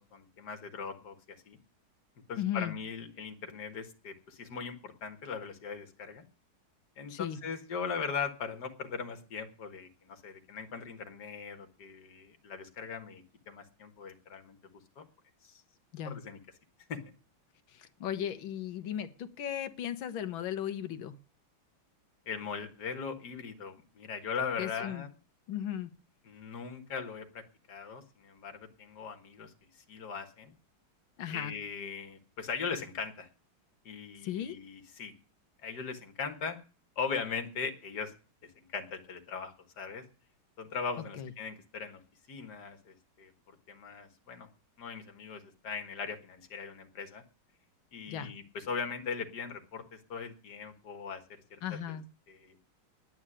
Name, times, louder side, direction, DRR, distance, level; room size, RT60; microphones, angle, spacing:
voice 1, 0.0-1.6 2.3-6.2 7.0-14.6 15.0-15.1 15.4-15.6 16.1-16.4 16.9-17.0 22.3-25.1 26.3-29.5 29.9-30.5 31.3-33.3 33.9-35.1 35.6-36.6 37.0-38.1 38.4-40.0 40.6-42.0 42.3-44.5 44.8-47.2 47.9-51.6 51.9-52.0 52.3-52.6, left 5 dB, 55° left, 6 dB, 2.1 m, -39 dB
voice 2, 2.4-2.7 7.1-7.4 15.9-16.2 17.7-21.2 24.6-25.1 25.5-25.9 31.2-31.5 34.2-34.6 41.2-41.3 48.1-48.3 51.6-52.1, left 10 dB, 80° left, 10 dB, 1.8 m, -36 dB
9.7 x 8.8 x 10.0 m, 0.38 s
omnidirectional pair, 2.2 m